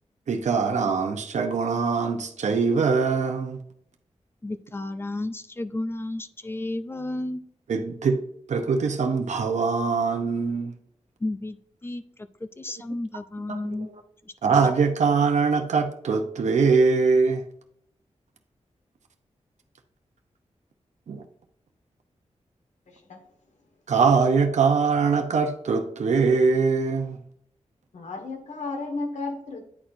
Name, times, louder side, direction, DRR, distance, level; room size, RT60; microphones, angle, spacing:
voice 1, 0.3-3.6 7.7-8.2 8.5-10.7 13.5-13.9 14.4-17.5 21.1-21.2 23.9-27.2, right 5 dB, 75° right, 0.7 m, -22 dB
voice 2, 4.4-7.4 11.2-11.6 11.8-12.3 12.6-13.9, left 2 dB, 20° left, 0.4 m, -32 dB
voice 3, 22.9-23.3 27.9-29.7, left 3 dB, 85° left, 1.5 m, -34 dB
9.7 x 4.4 x 2.5 m
wide cardioid pair, 155°, 12 cm